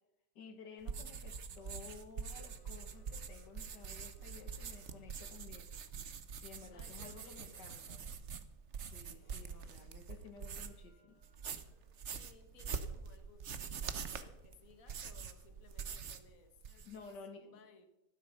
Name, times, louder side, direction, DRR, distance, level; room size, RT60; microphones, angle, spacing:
voice 1, 0.4-5.7 6.4-8.0 8.9-11.2 13.7-13.8 16.7-17.6, left 5 dB, 80° left, 7 dB, 2.0 m, -54 dB
sound 1, 0.8-10.9 11.2-16.3 16.6-17.1, right 6 dB, 50° right, 1.1 m, -45 dB
Camera, 2.2-5.5 9.1-9.8 10.4-12.2, right 1 dB, 75° right, 6.2 m, -71 dB
voice 2, 6.7-7.6 12.1-16.6 17.3-17.9, left 4 dB, 55° left, 7 dB, 1.8 m, -62 dB
13.0 x 12.0 x 5.5 m, 0.92 s
omnidirectional pair, 1.8 m